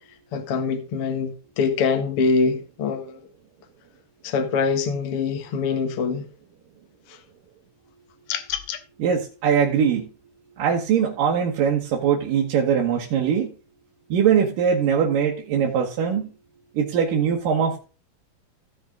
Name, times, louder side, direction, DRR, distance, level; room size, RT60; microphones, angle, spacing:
voice 1, 0.3-3.3 4.2-6.2, left 5 dB, 55° left, 1.8 m, -24 dB
sound 1, 8.3-8.8, left 11 dB, 75° left, 2.5 m, -29 dB
voice 2, 9.0-10.1 10.6-13.5 14.1-16.3 16.7-17.8, right 7 dB, 70° right, 2.9 m, -21 dB
15.5 x 6.0 x 3.8 m
omnidirectional pair, 4.3 m